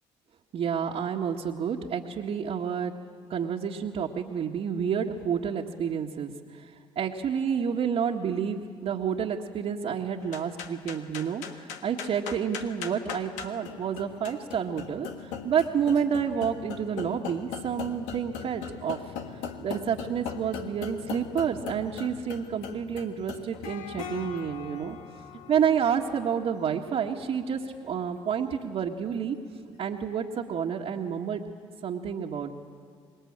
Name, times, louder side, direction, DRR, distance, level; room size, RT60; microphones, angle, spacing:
voice 1, 0.5-2.9 3.3-6.7 7.0-19.0 19.6-25.0 25.5-29.4 29.8-31.4 31.8-32.6, right 7 dB, 60° right, -3 dB, 1.7 m, -29 dB
sound 1, 10.2-29.8, left 7 dB, 85° left, 1.5 m, -41 dB
26.0 x 21.5 x 8.8 m, 2.1 s
supercardioid pair, 70°, 12 cm